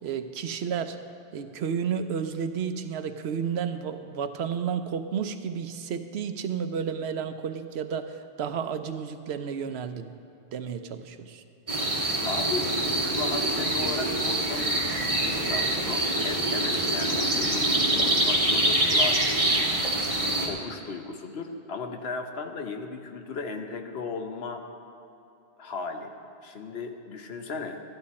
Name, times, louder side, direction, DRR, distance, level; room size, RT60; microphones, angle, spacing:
voice 1, 0.0-1.0 1.3-10.2 10.5-11.4, right 7 dB, 80° right, 9 dB, 0.9 m, -32 dB
sound 1, 11.7-20.5, right 1 dB, 35° right, 1.4 m, -25 dB
voice 2, 12.2-20.0 20.2-24.6 25.6-26.1 26.4-27.8, left 4 dB, 75° left, 5 dB, 1.1 m, -36 dB
13.5 x 11.0 x 4.2 m, 2.7 s
omnidirectional pair, 1.1 m